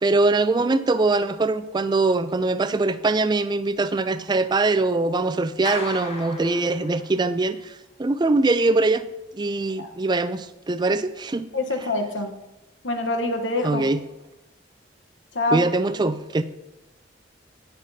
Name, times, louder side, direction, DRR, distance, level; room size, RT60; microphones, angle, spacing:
voice 1, 0.0-7.7 8.0-9.0 9.3-11.5 13.6-14.0 15.5-16.4, right 3 dB, 25° right, 12 dB, 0.4 m, -22 dB
Clapping, 5.6-7.4, left 3 dB, 35° left, 1.1 m, -36 dB
voice 2, 11.5-12.3 12.8-13.9 15.3-15.6, left 2 dB, 85° left, 6 dB, 1.1 m, -25 dB
17.5 x 6.7 x 2.8 m, 0.97 s
head